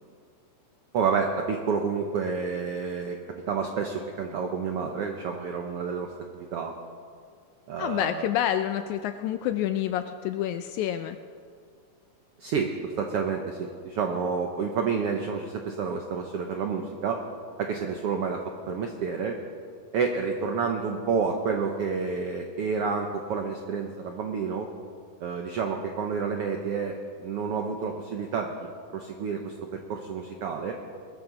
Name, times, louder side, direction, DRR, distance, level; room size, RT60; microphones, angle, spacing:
voice 1, 0.9-3.2 3.5-6.7 7.7-8.3 12.4-17.2 17.6-19.4 19.9-24.7 25.2-26.9 27.2-28.5 28.9-30.7, right 5 dB, 80° right, 3 dB, 1.3 m, -29 dB
voice 2, 7.8-11.2, left 11 dB, 80° left, 9 dB, 1.7 m, -28 dB
21.5 x 13.5 x 3.9 m, 2.1 s
omnidirectional pair, 3.8 m